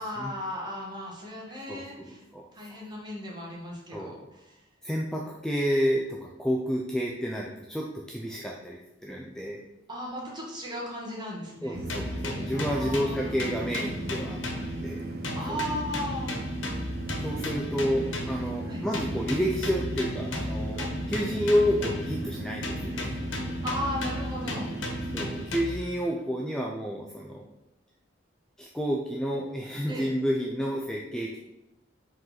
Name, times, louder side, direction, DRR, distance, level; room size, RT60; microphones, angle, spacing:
voice 1, 0.0-2.2 2.5-4.6 9.9-11.8 12.5-13.4 15.3-16.3 18.6-18.8 20.7-21.0 23.6-24.7 29.9-30.1, equal, 25° right, -3 dB, 1.7 m, -36 dB
voice 2, 1.5-2.1 2.3-2.8 3.9-4.1 4.8-9.6 11.6-15.1 15.5-15.6 17.2-20.8 21.1-23.2 25.1-27.5 28.6-31.4, equal, 5° left, -2 dB, 0.5 m, -30 dB
sound 1, 11.7-25.5, right 1 dB, 55° right, 0.7 m, -36 dB
sound 2, 11.9-15.0 15.2-18.5 18.9-22.3 22.6-25.9, left 1 dB, 85° left, 1.2 m, -36 dB
5.2 x 3.9 x 5.7 m, 0.92 s
head